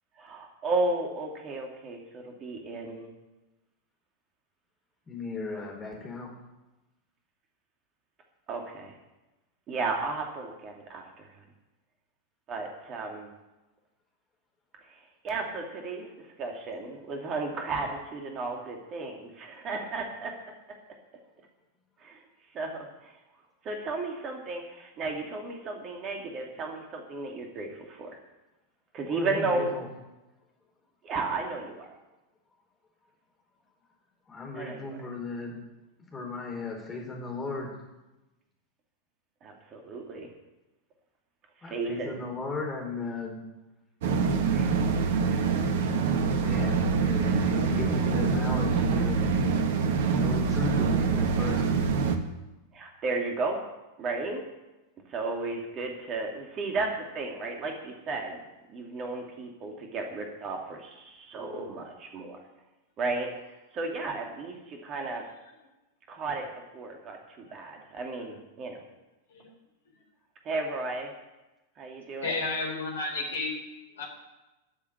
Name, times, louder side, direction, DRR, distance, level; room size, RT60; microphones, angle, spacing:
voice 1, 0.2-3.1 8.5-8.9 9.7-11.4 12.5-13.3 14.9-15.0 15.2-20.4 22.0-22.2 22.5-23.1 23.6-28.2 28.9-29.7 31.0-31.9 34.5-35.0 39.4-40.3 41.6-42.2 44.5-44.7 52.7-53.6 54.0-54.4 55.1-58.4 58.7-62.4 63.0-63.3 63.7-65.2 66.1-66.5 66.7-68.8 70.4-71.1 71.8-72.4, right 3 dB, 30° right, 2 dB, 2.7 m, -34 dB
voice 2, 5.1-6.3 29.0-29.9 34.3-35.5 36.1-37.7 41.6-43.4 45.7-49.3 50.1-51.8, left 3 dB, 15° left, -1 dB, 4.6 m, -36 dB
sound 1, 44.0-52.2, right 5 dB, 55° right, 1.4 m, -25 dB
voice 3, 72.2-73.5 73.9-74.1, left 3 dB, 65° left, 1 dB, 4.0 m, -32 dB
13.5 x 7.2 x 10.0 m, 1.0 s
figure-of-eight pair, 90°, 0 cm